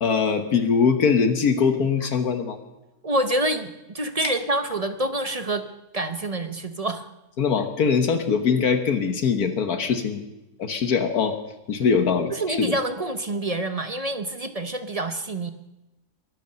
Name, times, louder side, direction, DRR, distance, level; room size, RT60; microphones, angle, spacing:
voice 1, 0.0-2.6 4.2-4.3 7.4-10.2 10.6-11.4 11.7-12.7, left 6 dB, 70° left, 8 dB, 1.6 m, -22 dB
voice 2, 3.0-5.7 5.9-7.1 11.9-12.0 12.3-15.5, right 1 dB, 35° right, 9 dB, 0.7 m, -27 dB
23.0 x 8.4 x 6.8 m, 0.95 s
omnidirectional pair, 1.7 m